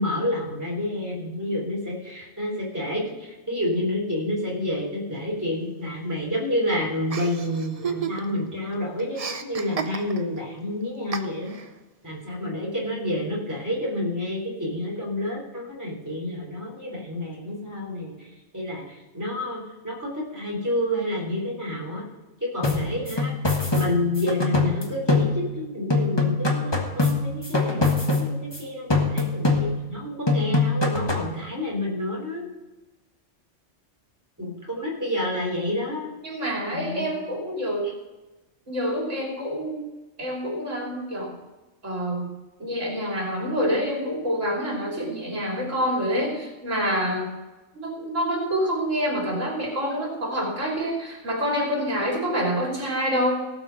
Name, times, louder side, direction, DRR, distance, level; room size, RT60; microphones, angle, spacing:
voice 1, 0.0-11.6 12.0-18.3 18.5-22.0 22.4-23.3 23.7-32.5 34.4-36.1 36.7-37.1, left 1 dB, 15° right, -3 dB, 3.6 m, -29 dB
Chuckle chortle, 7.1-8.5 8.7-10.4 11.1-11.7, right 6 dB, 35° right, 0.8 m, -32 dB
sound 1, 22.6-25.6 25.9-28.6 28.9-30.0 30.3-31.4, left 3 dB, 20° left, 1.4 m, -24 dB
voice 2, 36.2-37.9 38.7-39.8 40.2-41.3 41.8-42.3 42.6-47.3 47.7-53.4, equal, 90° right, -2 dB, 3.3 m, -27 dB
17.5 x 6.0 x 6.4 m, 1.1 s
omnidirectional pair, 1.3 m